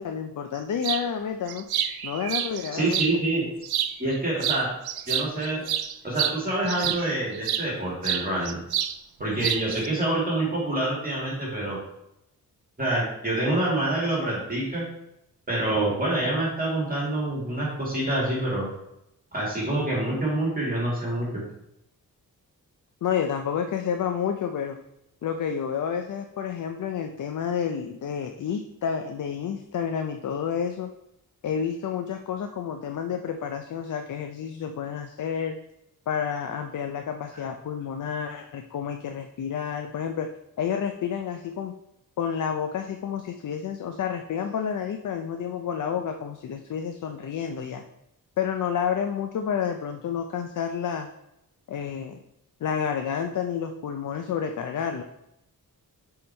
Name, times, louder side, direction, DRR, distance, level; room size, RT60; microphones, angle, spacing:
voice 1, 0.0-1.7 2.0-3.0 23.0-24.8 25.2-30.9 31.4-35.5 36.1-40.3 40.6-41.7 42.2-47.8 48.4-51.1 51.7-52.2 52.6-55.0, left 7 dB, 55° left, 6 dB, 0.5 m, -30 dB
sound 1, 0.8-1.1 1.5-3.1 3.6-4.2 4.4-7.7 8.0-9.0 9.2-9.9, right 10 dB, 75° right, 0.5 m, -28 dB
voice 2, 2.7-3.4 4.0-4.7 5.1-5.6 6.0-8.6 9.2-11.8 12.8-14.9 15.5-18.7 19.3-21.4 37.3-37.4, right 1 dB, 25° right, -5 dB, 2.0 m, -26 dB
6.8 x 3.9 x 4.3 m, 0.84 s
wide cardioid pair, 120°, 37 cm